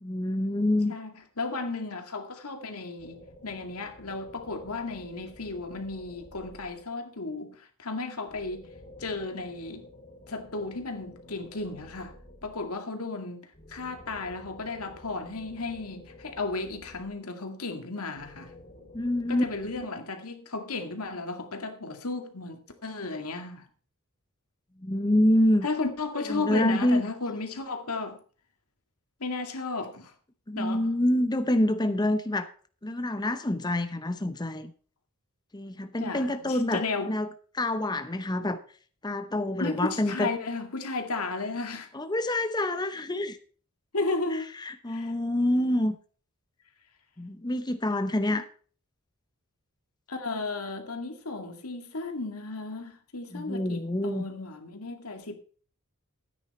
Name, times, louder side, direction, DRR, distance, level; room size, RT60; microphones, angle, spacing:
voice 1, 0.0-0.9 18.9-19.4 24.8-25.7 26.3-27.0 30.5-32.5 32.8-34.7 35.5-37.3 37.5-38.6 39.0-40.3 41.9-43.4 44.3-46.0 47.2-48.4 53.3-54.2, left 1 dB, 20° left, 0.8 m, -26 dB
voice 2, 1.4-8.7 9.0-9.8 10.3-12.1 12.4-18.5 19.3-23.7 25.6-28.2 29.2-30.1 30.6-31.0 36.0-37.1 39.6-41.9 43.9-44.5 44.9-45.1 50.1-55.3, left 3 dB, 85° left, 2.2 m, -34 dB
sound 1, 3.0-7.2 8.3-12.9 13.5-17.5 18.1-19.8, left 1 dB, 40° left, 4.1 m, -51 dB
13.5 x 9.4 x 4.3 m
head